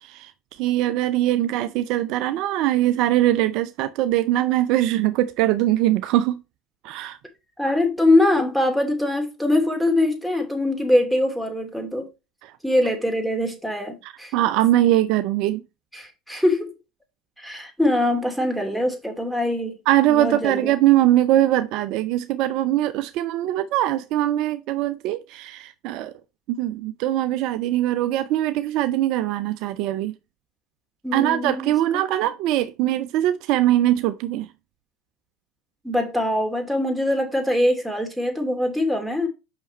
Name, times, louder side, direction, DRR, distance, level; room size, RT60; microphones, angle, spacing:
voice 1, 0.0-6.4 6.8-7.2 12.4-12.5 14.0-15.6 19.9-26.1 26.5-30.1 31.1-34.5, right 14 dB, 60° right, 0.4 m, -22 dB
voice 2, 7.6-12.1 12.6-14.3 15.9-16.7 17.4-19.8 20.1-20.7 31.0-31.7 35.8-39.3, left 1 dB, 5° right, 2.6 m, -22 dB
5.9 x 5.5 x 4.2 m
hypercardioid pair, 70°, 0 cm